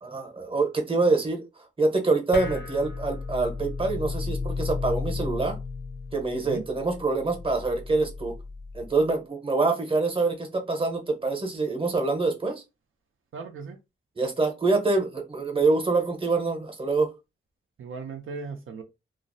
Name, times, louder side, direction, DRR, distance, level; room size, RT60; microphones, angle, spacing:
voice 1, 0.0-1.4 1.8-5.6 6.1-8.4 8.7-12.6 14.2-17.1, right 3 dB, 25° right, 0.8 m, -25 dB
sound 1, 2.3-9.1, left 4 dB, 55° left, 0.5 m, -34 dB
voice 2, 6.3-6.6 13.3-13.8 17.8-18.8, right 5 dB, 75° right, 0.4 m, -37 dB
2.4 x 2.0 x 2.5 m
wide cardioid pair, 90°, 21 cm